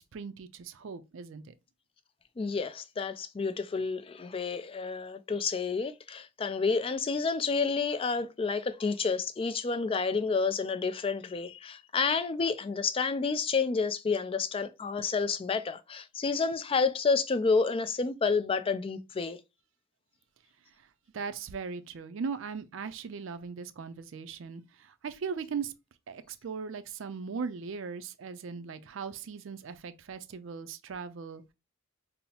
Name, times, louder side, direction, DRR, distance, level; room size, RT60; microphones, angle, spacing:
voice 1, 0.0-1.5 21.1-25.7 26.1-31.5, right 5 dB, 65° right, 0.4 m, -39 dB
voice 2, 2.4-19.4, left 4 dB, 25° left, 0.3 m, -29 dB
5.3 x 2.0 x 2.8 m
head